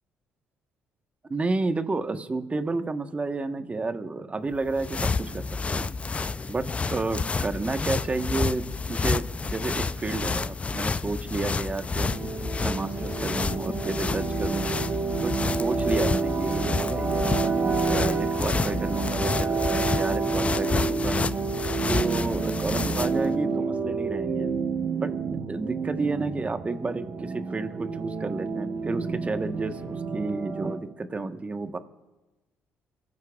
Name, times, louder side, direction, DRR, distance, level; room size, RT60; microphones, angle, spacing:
voice 1, 1.3-5.4 5.7-6.0 6.5-12.1 12.6-14.7 15.2-21.2 21.9-24.5 25.0-31.8, right 3 dB, 30° right, 8 dB, 1.2 m, -31 dB
sound 1, 4.5-23.3, left 4 dB, 25° left, 0.4 m, -29 dB
sound 2, 12.0-30.8, right 5 dB, 45° right, 1.3 m, -29 dB
28.0 x 15.0 x 2.4 m, 1.1 s
supercardioid pair, 60°, 5 cm